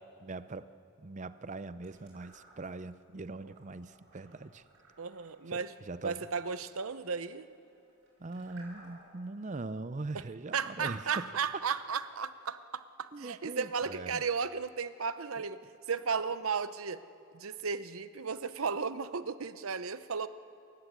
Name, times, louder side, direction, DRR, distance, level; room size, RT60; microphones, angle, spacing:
voice 1, 0.2-4.6 5.5-6.3 8.2-11.3 13.1-14.2 15.4-15.5, right 3 dB, 35° right, 14 dB, 0.6 m, -41 dB
sound 1, 1.8-2.9 3.3-9.2, right 2 dB, 65° right, 7.2 m, -59 dB
voice 2, 5.0-5.7 6.0-7.5 10.5-15.6 15.9-17.0 17.3-20.3, right 5 dB, 80° right, 13 dB, 0.8 m, -34 dB
28.0 x 14.5 x 8.1 m, 2.5 s
head